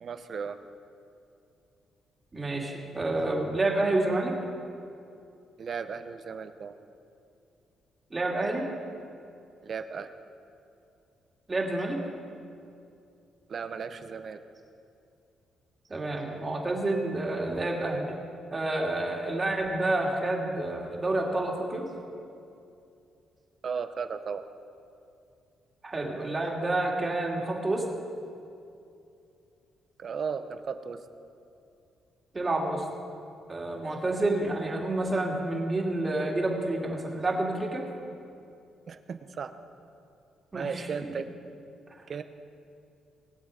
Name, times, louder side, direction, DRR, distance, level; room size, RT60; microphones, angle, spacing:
voice 1, 0.0-0.6 5.6-6.7 9.6-10.1 13.5-14.4 23.6-24.4 30.0-31.0 38.9-39.5 40.5-41.3 42.1-42.2, right 6 dB, 50° right, 9 dB, 0.8 m, -35 dB
voice 2, 2.3-4.3 8.1-8.7 11.5-12.0 15.9-18.2 18.5-21.9 25.8-27.8 32.3-32.8 33.5-37.8 40.5-41.1, right 2 dB, 25° right, -1 dB, 2.4 m, -29 dB
20.5 x 7.3 x 5.1 m, 2.5 s
cardioid pair, 90°, 0 cm